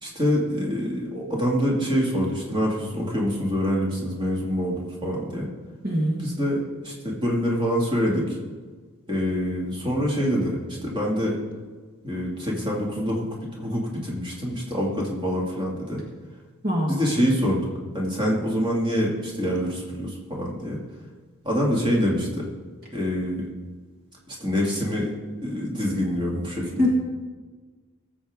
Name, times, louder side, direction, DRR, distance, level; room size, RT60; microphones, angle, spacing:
voice 1, 0.0-5.5 6.2-8.3 9.1-11.4 12.0-13.3 13.6-16.0 16.9-17.6 17.9-20.8 21.4-22.4 22.9-23.5 24.3-25.1 25.4-26.9, equal, 20° right, -3 dB, 2.1 m, -25 dB
voice 2, 5.8-6.2 16.6-16.9 26.8-26.9, left 1 dB, 45° right, -2 dB, 1.6 m, -22 dB
19.0 x 7.6 x 3.6 m, 1.4 s
head